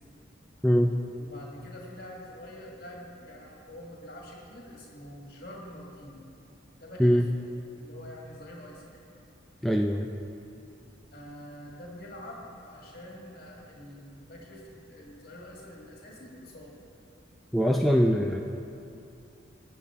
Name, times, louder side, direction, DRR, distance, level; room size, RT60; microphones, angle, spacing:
voice 1, 0.6-1.0 7.0-7.3 9.6-10.1 17.5-18.4, equal, ahead, 1 dB, 0.3 m, -22 dB
voice 2, 1.2-6.2 6.8-7.2 7.8-9.0 11.1-14.6 14.9-16.7, left 1 dB, 50° left, -2 dB, 1.9 m, -46 dB
17.5 x 7.4 x 3.7 m, 2.6 s
head